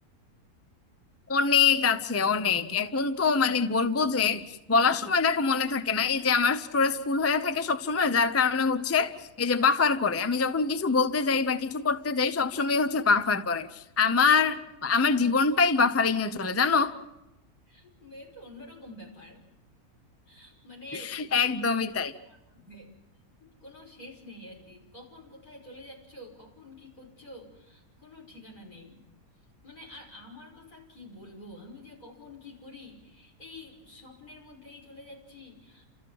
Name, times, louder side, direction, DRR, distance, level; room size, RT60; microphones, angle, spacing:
voice 1, 1.3-16.9 20.9-22.1, left 5 dB, 15° left, 0.5 m, -25 dB
voice 2, 17.7-19.4 20.3-21.2 22.3-22.9 23.4-29.0 29.6-35.9, left 1 dB, 80° left, 6.5 m, -48 dB
30.0 x 14.0 x 7.7 m
omnidirectional pair, 1.5 m